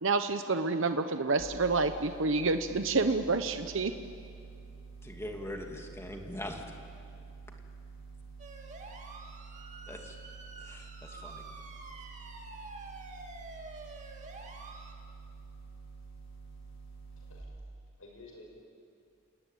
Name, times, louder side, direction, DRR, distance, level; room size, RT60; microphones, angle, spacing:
voice 1, 0.0-3.9, right 3 dB, 65° right, 8 dB, 0.9 m, -28 dB
sound 1, 1.4-17.4, right 4 dB, 60° left, 5.5 m, -49 dB
voice 2, 5.0-6.6 9.9-10.1 10.6-10.9 11.2-11.4, left 1 dB, 15° left, 2 dB, 2.4 m, -41 dB
sound 2, 8.4-14.9, right 3 dB, 35° right, 2.4 m, -48 dB
voice 3, 17.2-17.5 18.0-18.5, left 2 dB, 85° left, 1 dB, 6.0 m, -52 dB
28.5 x 18.5 x 9.0 m, 2.4 s
head